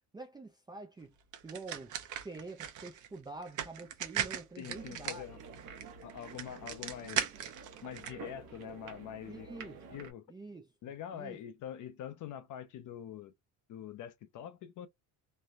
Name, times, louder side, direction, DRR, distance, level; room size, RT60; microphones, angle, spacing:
voice 1, 0.1-1.1 1.4-1.9 2.2-5.2 9.3-9.8 10.3-10.7 11.1-11.4, right 3 dB, 10° right, 0.3 m, -46 dB
sound 1, 1.3-8.1, right 10 dB, 50° right, 0.7 m, -39 dB
voice 2, 4.6-5.4 6.0-7.3 7.8-10.3 10.8-13.3 13.7-14.9, left 10 dB, 55° left, 0.6 m, -45 dB
sound 2, 4.7-10.1, right 6 dB, 70° right, 1.0 m, -50 dB
3.2 x 2.2 x 2.5 m
cardioid pair, 155°, 38 cm